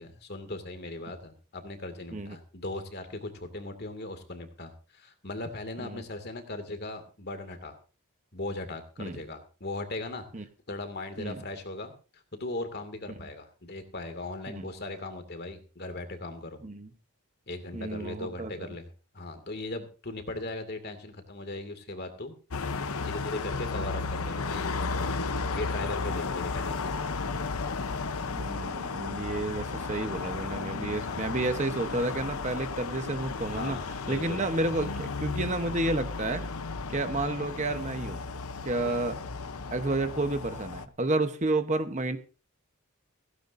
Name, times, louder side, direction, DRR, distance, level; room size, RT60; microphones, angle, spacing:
voice 1, 0.0-7.8 8.3-10.2 10.7-16.6 17.5-18.9 19.1-22.3 23.0-24.7 25.5-26.9 31.0-31.2 33.5-34.4 38.8-39.0, left 2 dB, 45° left, 8 dB, 2.3 m, -38 dB
voice 2, 17.7-18.7 28.2-33.8 34.1-36.4 36.9-38.2 38.6-39.1 39.7-42.2, right 2 dB, 30° right, 8 dB, 1.0 m, -31 dB
sound 1, 22.5-40.8, left 4 dB, 75° left, 0.9 m, -34 dB
16.5 x 16.0 x 2.7 m, 0.35 s
head